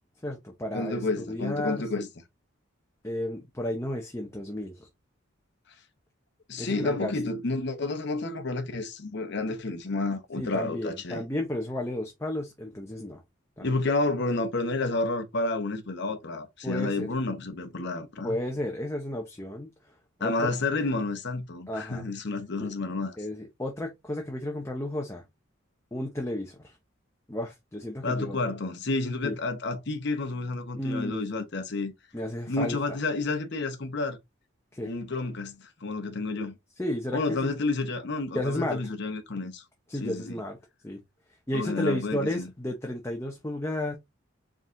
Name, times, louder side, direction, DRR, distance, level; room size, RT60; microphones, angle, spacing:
voice 1, 0.2-2.1 3.0-4.9 6.6-7.1 10.4-13.2 13.6-13.7 16.6-17.1 18.2-19.7 20.2-20.5 21.7-22.1 22.6-22.7 23.2-25.2 25.9-26.8 27.3-28.4 29.2-29.4 30.7-31.2 32.1-32.8 34.7-34.9 36.8-37.5 38.3-38.8 39.9-40.6 40.8-41.0 41.5-44.0, left 1 dB, 15° left, 0.7 m, -32 dB
voice 2, 0.7-2.1 6.5-11.2 13.6-18.4 20.2-23.2 28.0-31.9 32.5-34.2 34.8-36.6 37.1-39.6 40.0-40.4 41.5-42.5, left 3 dB, 55° left, 0.9 m, -30 dB
4.7 x 3.7 x 2.6 m
head